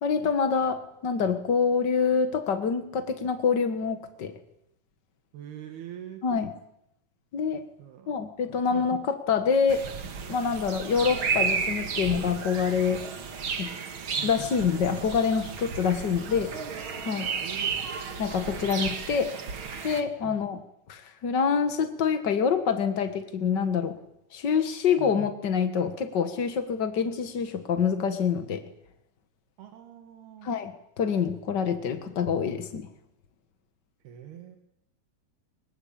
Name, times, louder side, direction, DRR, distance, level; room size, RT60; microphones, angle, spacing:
voice 1, 0.0-4.3 6.2-6.5 7.3-7.6 8.1-9.9 10.3-13.0 13.6-13.7 14.2-16.5 17.0-17.3 18.2-19.3 19.8-20.6 20.9-24.0 24.3-28.6 30.4-32.9, left 6 dB, 60° left, 9 dB, 1.1 m, -26 dB
voice 2, 5.3-6.2 7.8-8.9 10.9-11.1 14.1-14.5 17.4-17.9 20.3-20.4 25.0-25.2 29.6-30.5 34.0-34.6, right 10 dB, 85° right, 6 dB, 3.9 m, -44 dB
sound 1, 9.7-20.0, right 6 dB, 45° right, 2.0 m, -33 dB
24.0 x 22.0 x 8.8 m, 0.80 s
omnidirectional pair, 4.4 m